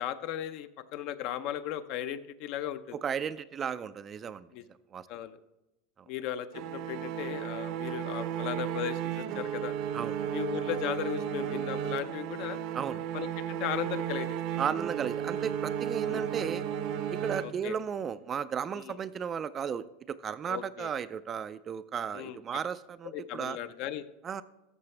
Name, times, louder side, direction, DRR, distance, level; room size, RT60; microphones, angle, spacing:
voice 1, 0.0-3.0 4.5-4.6 5.1-5.4 6.1-9.7 10.3-12.6 13.1-14.6 16.1-16.3 17.4-17.8 18.8-19.0 20.5-20.9 22.1-22.4 23.1-24.1, left 11 dB, 50° left, 12 dB, 0.6 m, -36 dB
voice 2, 2.9-4.5 4.9-5.1 9.9-10.3 12.7-13.0 14.6-16.6 17.1-23.6 24.2-24.4, right 7 dB, 25° right, 14 dB, 0.3 m, -34 dB
sound 1, 6.5-18.0, right 9 dB, 55° right, 0.7 m, -34 dB
13.5 x 6.9 x 3.2 m, 0.98 s
supercardioid pair, 140°, 0 cm